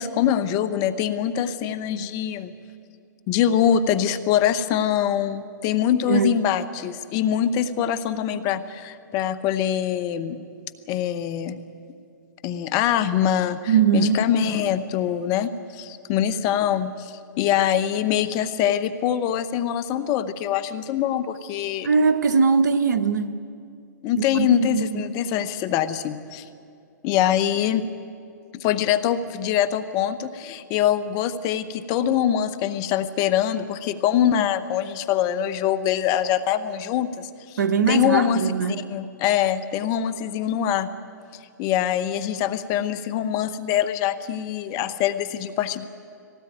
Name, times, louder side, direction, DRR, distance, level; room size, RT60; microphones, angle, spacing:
voice 1, 0.0-2.5 3.3-10.4 10.9-11.6 12.4-21.9 24.0-26.4 27.0-27.8 28.5-37.6 37.9-40.9 41.6-45.9, left 10 dB, 35° left, 12 dB, 1.0 m, -24 dB
voice 2, 13.7-14.2 21.8-23.4 24.3-25.0 37.6-38.8, right 5 dB, 70° right, 10 dB, 1.2 m, -21 dB
19.5 x 17.0 x 9.3 m, 2.4 s
hypercardioid pair, 120°, 10 cm